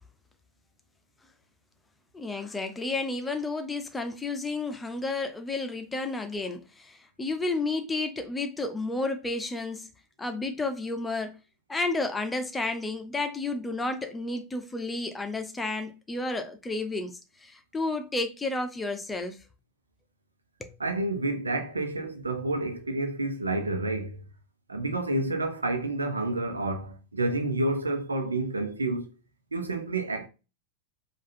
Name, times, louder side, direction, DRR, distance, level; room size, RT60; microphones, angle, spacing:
voice 1, 2.1-9.9 10.2-11.4 11.7-19.4 20.6-20.7, left 2 dB, 10° left, 0.7 m, -31 dB
voice 2, 20.8-24.3 24.7-29.1 29.5-30.3, right 2 dB, 80° right, 0.8 m, -29 dB
4.9 x 2.5 x 4.2 m
figure-of-eight pair, 90°, 0 cm